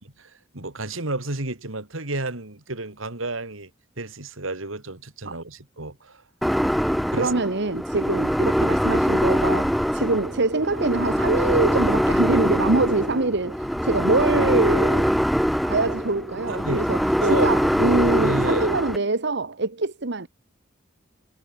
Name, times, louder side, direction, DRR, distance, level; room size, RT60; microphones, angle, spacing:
voice 1, 0.2-3.7 4.0-6.2 7.1-7.3 16.5-16.8 17.2-17.5 18.2-18.8, right 2 dB, 85° right, 3.3 m, -30 dB
sound 1, 6.4-19.0, equal, ahead, 1.1 m, -23 dB
voice 2, 7.1-20.3, right 3 dB, 60° right, 1.3 m, -24 dB
head